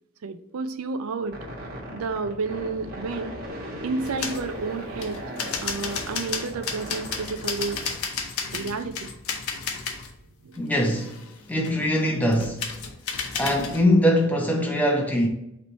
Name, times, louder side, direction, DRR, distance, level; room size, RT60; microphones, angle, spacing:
voice 1, 0.2-1.4 1.9-3.3 3.8-5.2 5.6-7.8 8.5-9.1 10.4-10.6, right 4 dB, 80° right, 0.4 m, -31 dB
sound 1, 1.3-7.9, equal, 45° right, 1.1 m, -37 dB
sound 2, 4.0-4.5 5.0-10.2 10.5-11.9 12.3-13.9, left 5 dB, 85° left, 0.7 m, -33 dB
voice 2, 10.6-11.2 11.5-12.7 13.3-15.3, left 1 dB, 5° left, 0.7 m, -22 dB
4.1 x 3.1 x 4.2 m
head